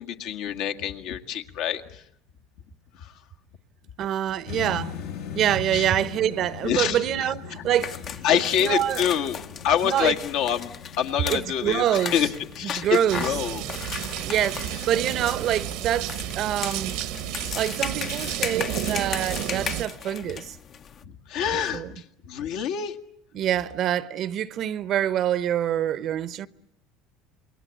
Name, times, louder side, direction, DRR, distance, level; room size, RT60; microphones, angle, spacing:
voice 1, 0.0-2.0 2.9-3.2 5.7-5.9 6.6-7.0 7.6-7.7 8.2-10.7 11.0-12.3 12.5-13.6 14.7-14.8 21.0-23.0, left 9 dB, 70° left, 1.8 m, -26 dB
voice 2, 4.0-4.9 5.3-8.0 8.6-9.0 9.8-10.1 11.3-12.1 12.7-13.2 14.2-17.0 17.5-20.6 21.7-21.9 23.3-26.5, right 11 dB, 55° right, 1.0 m, -26 dB
sound 1, 4.5-18.4, left 7 dB, 90° left, 5.9 m, -42 dB
sound 2, 7.8-21.0, left 7 dB, 45° left, 1.0 m, -37 dB
sound 3, 13.1-19.9, right 13 dB, 75° right, 1.4 m, -32 dB
28.0 x 22.0 x 8.4 m
supercardioid pair, 90°, 0 cm